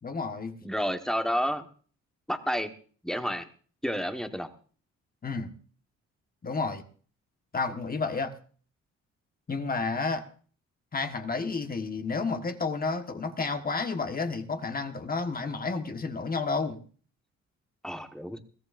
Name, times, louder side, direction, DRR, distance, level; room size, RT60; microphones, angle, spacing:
voice 1, 0.0-0.6 5.2-5.5 6.4-6.8 7.5-8.3 9.5-10.2 10.9-16.8, left 4 dB, 30° left, 7 dB, 1.4 m, -31 dB
voice 2, 0.6-1.6 2.3-2.7 3.0-3.4 3.8-4.5 17.8-18.4, equal, ahead, 7 dB, 1.3 m, -30 dB
21.5 x 15.5 x 2.6 m, 0.43 s
cardioid pair, 90°, 30 cm